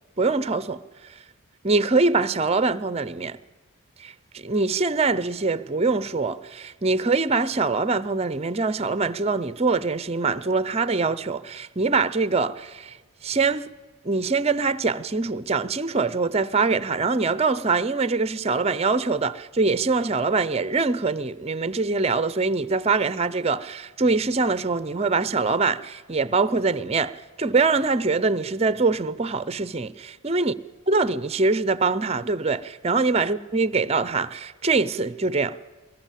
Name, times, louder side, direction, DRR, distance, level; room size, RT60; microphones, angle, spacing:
voice 1, 0.2-0.8 1.6-3.4 4.0-12.9 13.2-13.6 14.0-30.5 30.9-35.6, right 3 dB, 30° right, 0.6 m, -23 dB
23.5 x 20.5 x 7.5 m
head